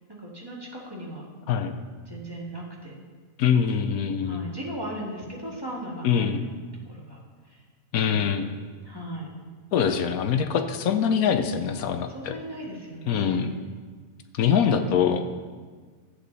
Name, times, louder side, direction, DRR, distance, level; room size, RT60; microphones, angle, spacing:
voice 1, 0.1-1.2 2.1-3.0 4.2-6.4 6.9-7.2 7.5-7.6 7.9-8.3 8.8-9.3 12.1-13.5 14.6-15.0, equal, 15° right, -4 dB, 2.0 m, -37 dB
voice 2, 1.5-1.8 3.4-4.5 6.0-6.4 7.9-8.5 9.7-12.3 13.1-13.5 14.3-15.2, left 7 dB, 80° left, 8 dB, 1.2 m, -24 dB
13.0 x 8.3 x 4.1 m, 1.5 s
omnidirectional pair, 1.5 m